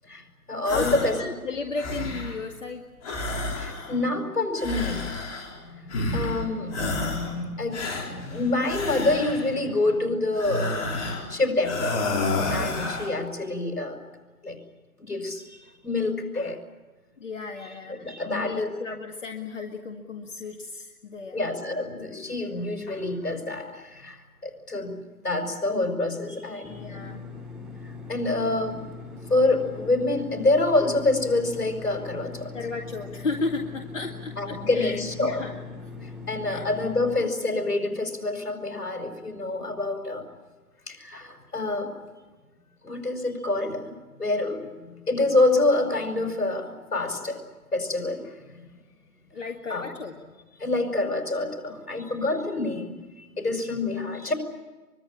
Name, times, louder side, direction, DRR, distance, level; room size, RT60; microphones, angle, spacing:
voice 1, 0.1-1.2 3.5-5.0 5.6-10.9 11.3-12.0 12.5-14.0 14.4-14.6 15.0-16.6 17.9-18.7 21.3-25.0 25.2-27.0 27.8-28.8 29.3-32.5 34.4-35.4 36.0-40.2 40.9-41.9 42.8-47.4 47.7-48.3 49.7-49.9 50.6-54.3, left 2 dB, 75° left, 6 dB, 5.8 m, -27 dB
sound 1, 0.6-1.2 1.6-2.4 3.0-4.1 4.6-5.6 5.9-6.4 6.7-7.4 7.7-9.6 10.3-11.3 11.6-13.1, left 2 dB, 25° left, 4.5 m, -30 dB
voice 2, 1.2-2.8 12.6-12.9 17.2-21.4 26.6-27.3 32.5-35.6 36.4-36.6 49.3-50.1, left 4 dB, 55° left, 3 dB, 2.1 m, -34 dB
sound 2, 26.6-37.2, left 4 dB, ahead, 1.3 m, -41 dB
24.5 x 23.0 x 8.9 m, 1.2 s
figure-of-eight pair, 145°, 46 cm